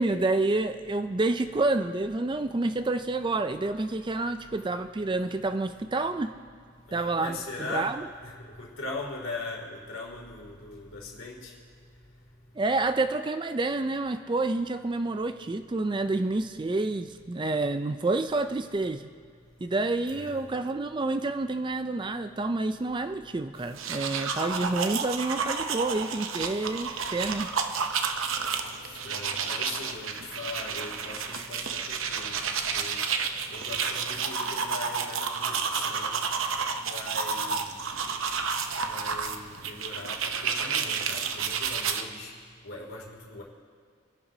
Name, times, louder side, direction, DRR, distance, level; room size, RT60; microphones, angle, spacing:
voice 1, 0.0-6.3 6.9-8.0 12.6-19.1 19.6-27.5, right 2 dB, 20° right, 9 dB, 0.4 m, -28 dB
voice 2, 6.9-8.0 8.2-11.5 20.1-20.4 28.8-32.3 32.7-33.0 33.5-36.2 36.9-37.7 38.9-42.3 42.6-43.4, left 2 dB, 70° left, -1 dB, 2.8 m, -40 dB
sound 1, 23.6-42.0, right 6 dB, 70° right, 0.8 m, -31 dB
26.0 x 11.0 x 2.8 m, 2.1 s
head